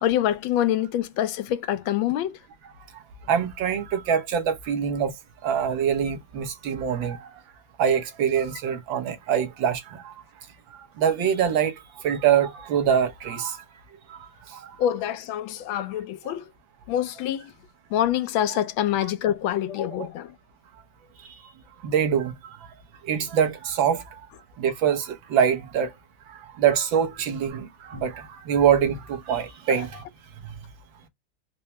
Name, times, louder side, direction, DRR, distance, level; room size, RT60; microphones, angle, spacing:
voice 1, 0.0-2.4 14.8-16.4 16.9-17.5 17.9-20.3, left 11 dB, 85° left, 1.4 m, -25 dB
voice 2, 3.3-5.1 5.4-7.4 7.8-10.1 11.0-11.7 12.0-13.6 14.1-14.7 21.8-22.3 23.1-24.0 24.6-25.9 26.3-30.0 30.4-30.5, right 8 dB, 75° right, 1.7 m, -24 dB
4.5 x 2.1 x 2.8 m
omnidirectional pair, 2.1 m